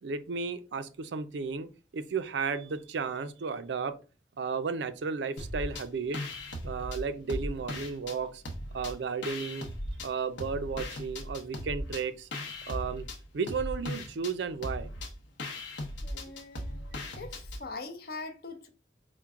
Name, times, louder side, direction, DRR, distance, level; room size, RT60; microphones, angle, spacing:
voice 1, 0.0-3.9 4.4-6.3 6.6-8.4 8.7-9.7 10.0-12.3 12.7-13.1 13.3-14.9, right 5 dB, 75° right, 0.4 m, -34 dB
sound 1, 5.4-5.9 6.1-8.2 8.4-10.1 10.4-17.6, left 1 dB, 85° left, 0.8 m, -38 dB
voice 2, 16.0-18.7, left 3 dB, 55° left, 0.6 m, -43 dB
4.4 x 2.1 x 3.5 m
head